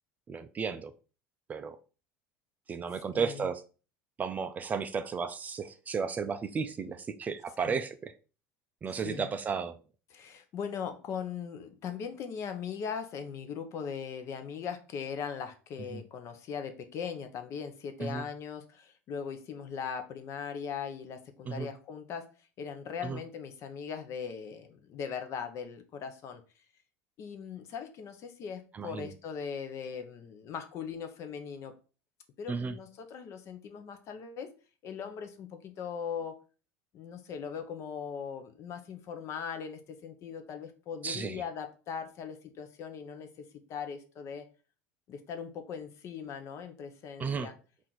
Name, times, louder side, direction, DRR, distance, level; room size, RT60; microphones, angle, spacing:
voice 1, 0.3-0.9 1.5-1.8 2.7-3.6 4.2-8.1 8.8-9.7 15.9-16.0 18.0-18.3 21.5-21.7 23.0-23.2 28.7-29.1 32.5-32.7 41.0-41.4 47.2-47.5, right 5 dB, 25° right, 10 dB, 0.3 m, -34 dB
voice 2, 2.9-3.5 7.6-7.8 8.9-9.3 10.1-22.3 22.6-26.4 27.2-31.7 32.4-34.5 34.8-36.4 36.9-44.5 45.1-47.5, left 7 dB, 45° left, 7 dB, 0.7 m, -39 dB
4.3 x 2.5 x 3.9 m, 0.36 s
supercardioid pair, 115°, 7 cm